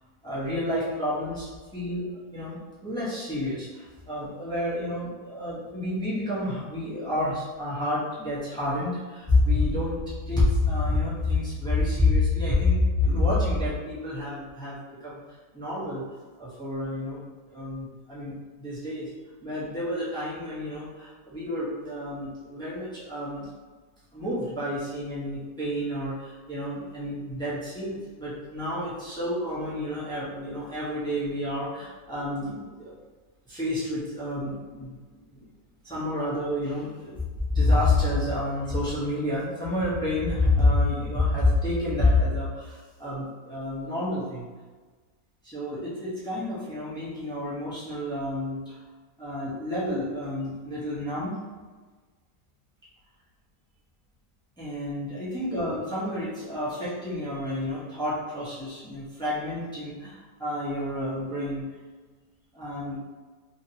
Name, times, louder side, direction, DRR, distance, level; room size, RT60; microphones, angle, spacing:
voice 1, 0.2-10.0 10.3-15.2 15.5-16.0 16.4-19.1 19.4-23.5 24.1-32.9 33.5-35.4 35.8-37.2 37.5-44.5 45.4-48.8 49.2-51.4 54.6-61.7 62.5-63.0, left 2 dB, 5° left, -10 dB, 0.5 m, -28 dB
2.8 x 2.8 x 2.8 m, 1.4 s
omnidirectional pair, 1.7 m